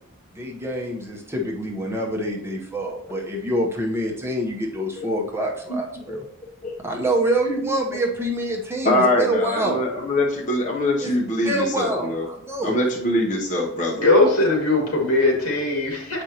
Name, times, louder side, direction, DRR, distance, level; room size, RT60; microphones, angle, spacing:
voice 1, 0.3-6.3 6.8-9.8 11.0-11.1 11.4-12.8, right 1 dB, 10° right, 0 dB, 0.8 m, -26 dB
voice 2, 8.8-12.3 12.6-14.1, left 1 dB, 35° left, -1 dB, 0.9 m, -23 dB
voice 3, 14.0-16.2, left 2 dB, 85° left, 0 dB, 2.2 m, -19 dB
7.9 x 5.1 x 2.9 m, 0.82 s
head